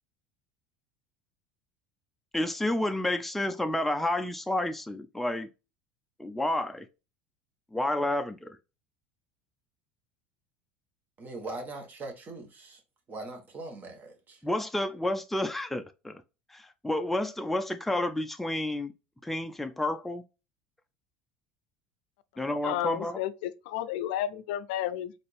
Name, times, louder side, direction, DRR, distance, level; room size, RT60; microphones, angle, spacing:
voice 1, 2.3-5.5 6.2-6.9 7.7-8.6 14.4-16.2 16.5-18.9 19.2-20.2 22.4-23.2, left 1 dB, 5° left, 0.5 m, -30 dB
voice 2, 11.2-12.8 13.1-14.4, right 2 dB, 35° right, 1.4 m, -41 dB
voice 3, 22.6-25.1, left 12 dB, 70° left, 0.4 m, -32 dB
4.1 x 2.7 x 3.3 m
hypercardioid pair, 75°, 5 cm